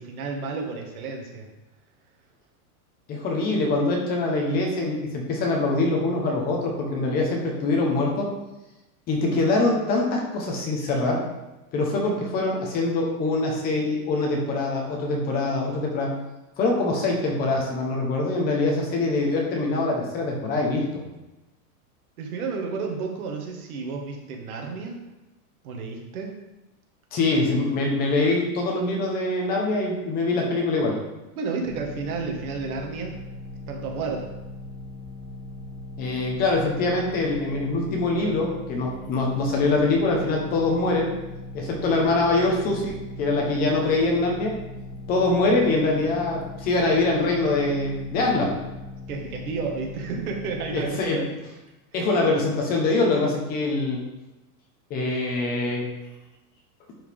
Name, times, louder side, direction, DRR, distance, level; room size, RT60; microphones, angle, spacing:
voice 1, 0.0-1.5 12.0-12.3 22.2-25.0 25.6-26.3 31.3-33.2 33.7-34.3 43.2-43.4 49.1-51.2, right 4 dB, 70° right, 1 dB, 1.9 m, -32 dB
voice 2, 3.1-8.3 9.1-11.2 11.7-16.1 16.6-21.0 27.1-31.0 36.0-41.1 41.5-44.6 45.1-48.5 50.7-51.2 51.9-54.0 54.9-55.9, left 2 dB, 20° left, 0 dB, 1.1 m, -24 dB
sound 1, 31.6-50.9, left 2 dB, 45° left, 1.8 m, -39 dB
10.5 x 4.9 x 3.6 m, 1.0 s
supercardioid pair, 175°, 45 cm